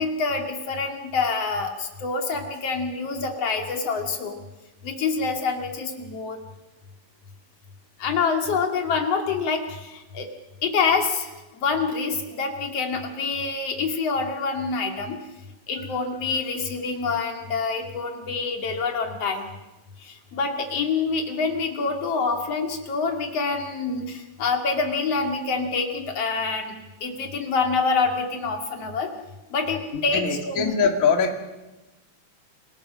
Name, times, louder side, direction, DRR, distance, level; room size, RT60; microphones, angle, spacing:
voice 1, 0.0-4.4 4.8-6.4 8.0-10.3 10.6-11.3 11.6-15.2 15.7-19.5 20.0-26.7 27.0-29.1 29.5-30.8, left 4 dB, 45° left, 3 dB, 3.2 m, -26 dB
voice 2, 29.9-31.4, left 5 dB, 30° left, 4 dB, 1.8 m, -22 dB
27.5 x 18.0 x 6.4 m, 1.1 s
omnidirectional pair, 4.1 m